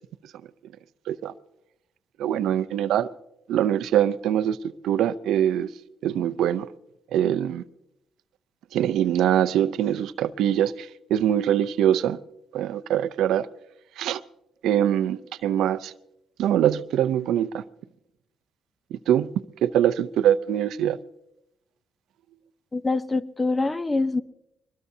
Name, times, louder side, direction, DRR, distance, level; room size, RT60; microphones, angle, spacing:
voice 1, 2.2-3.1 3.5-4.6 4.8-5.7 6.0-6.7 7.1-7.6 8.7-12.2 12.5-13.5 14.0-14.2 14.6-15.9 16.4-17.6 18.9-19.3 19.6-21.0, right 10 dB, 80° right, 0.6 m, -23 dB
voice 2, 22.7-24.2, left 3 dB, 20° left, 0.7 m, -25 dB
23.0 x 20.5 x 2.7 m
cardioid pair, 90°, 0 cm